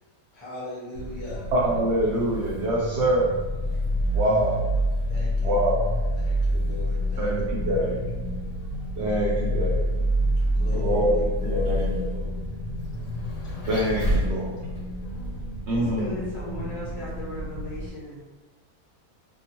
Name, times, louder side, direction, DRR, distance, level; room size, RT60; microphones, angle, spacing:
voice 1, 0.3-1.5 5.1-5.7 6.1-7.3 7.6-7.8 10.5-12.2, left 1 dB, 30° left, -8 dB, 0.5 m, -39 dB
Vehicle, 0.9-17.9, equal, 85° left, 1.3 m, -28 dB
voice 2, 1.5-3.4 4.1-4.6 5.4-5.8 7.2-8.0 9.0-9.8 10.7-12.0 13.7-14.6 15.7-16.2, right 1 dB, 90° right, -5 dB, 0.6 m, -25 dB
voice 3, 15.7-18.2, left 1 dB, 55° left, -7 dB, 1.3 m, -37 dB
2.9 x 2.5 x 2.8 m, 1.2 s
omnidirectional pair, 1.7 m